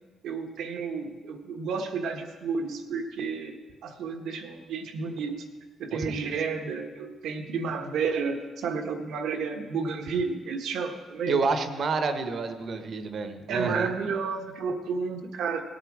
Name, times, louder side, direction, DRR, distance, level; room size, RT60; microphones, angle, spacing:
voice 1, 0.2-3.5 3.8-5.4 5.8-11.4 13.5-15.6, right 5 dB, 80° right, 5 dB, 1.3 m, -31 dB
voice 2, 5.9-6.3 11.3-13.9, right 4 dB, 55° right, 8 dB, 1.2 m, -29 dB
17.5 x 8.2 x 4.9 m, 1.4 s
cardioid pair, 90°, 0 cm